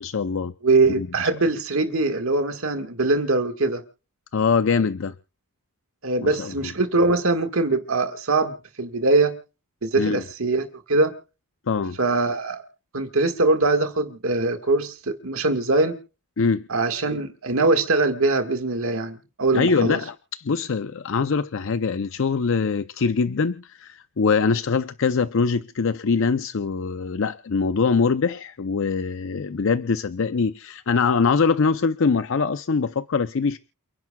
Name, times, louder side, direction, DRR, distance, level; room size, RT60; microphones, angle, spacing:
voice 1, 0.0-0.5 1.0-1.3 4.3-5.1 6.2-6.7 10.0-10.2 11.7-12.0 16.4-16.7 19.5-33.6, left 5 dB, 60° left, 0.5 m, -23 dB
voice 2, 0.6-3.8 6.0-9.3 9.8-11.1 12.0-12.6 12.9-16.0 16.7-20.0, right 3 dB, 65° right, 1.6 m, -22 dB
29.0 x 10.5 x 2.3 m
head